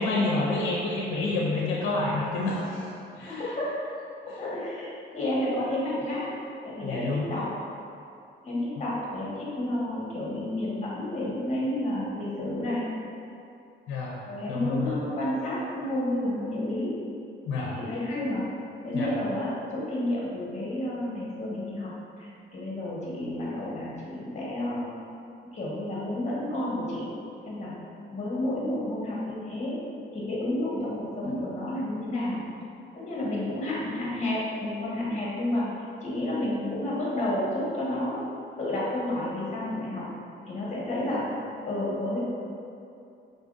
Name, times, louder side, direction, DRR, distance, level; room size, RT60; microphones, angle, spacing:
voice 1, 0.0-2.9 3.2-3.4 6.8-7.3 13.9-14.1 14.5-15.0 17.5-17.7 18.9-19.1, left 3 dB, 85° left, -3 dB, 0.6 m, -28 dB
voice 2, 3.3-3.8 4.3-6.3 6.6-7.5 8.4-12.8 14.3-16.9 17.7-18.4 18.8-21.9 22.2-24.9 25.5-27.0 27.4-27.7 28.1-29.8 30.1-32.4 32.9-35.6 36.0-38.2 38.6-40.0 40.5-41.2 41.7-42.2, left 1 dB, 35° left, -6 dB, 1.5 m, -30 dB
4.7 x 3.8 x 2.6 m, 2.6 s
cardioid pair, 90°, 20 cm